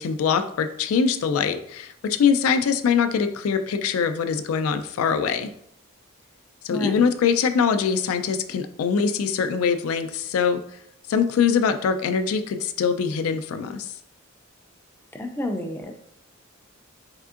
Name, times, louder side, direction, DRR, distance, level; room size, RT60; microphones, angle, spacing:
voice 1, 0.0-5.5 6.6-10.6 11.1-13.9, left 6 dB, 85° left, 8 dB, 0.3 m, -23 dB
voice 2, 15.1-15.9, equal, 10° left, 4 dB, 0.4 m, -29 dB
3.6 x 3.4 x 2.4 m, 0.70 s
head